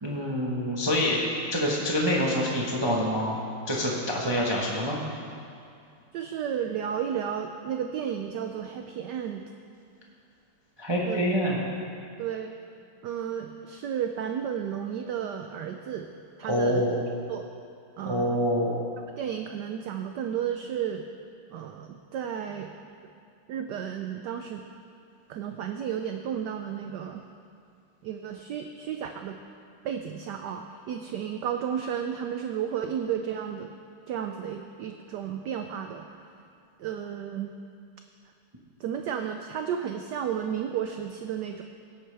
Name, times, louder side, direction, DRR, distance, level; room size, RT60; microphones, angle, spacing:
voice 1, 0.0-1.2 1.5-3.4 3.7-5.0 10.8-11.6 16.5-17.0 18.0-18.8, equal, 25° right, -3 dB, 0.6 m, -26 dB
voice 2, 6.1-9.4 11.0-11.3 12.2-12.5 13.0-16.1 16.4-16.8 17.3-17.5 18.0-18.4 19.1-21.1 21.5-22.7 23.5-24.6 25.3-27.2 28.0-29.4 29.8-33.7 34.1-36.1 36.8-37.5 38.8-41.6, right 8 dB, 85° right, 6 dB, 0.9 m, -33 dB
17.0 x 8.8 x 3.4 m, 2.5 s
omnidirectional pair, 2.4 m